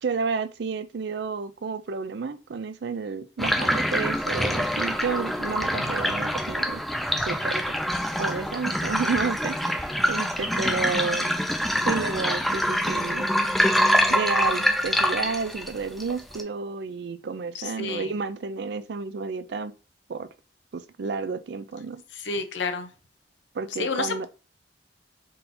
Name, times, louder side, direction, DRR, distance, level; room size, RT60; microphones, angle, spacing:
voice 1, 0.0-6.8 7.2-7.6 8.2-11.3 11.8-13.3 14.1-19.7 20.1-20.3 20.7-22.0 23.5-24.3, right 5 dB, 65° right, 0.4 m, -31 dB
sound 1, 3.4-16.4, equal, ahead, 0.5 m, -25 dB
voice 2, 17.5-18.1 22.1-22.9 23.8-24.3, left 4 dB, 85° left, 0.7 m, -30 dB
3.8 x 2.7 x 4.1 m
head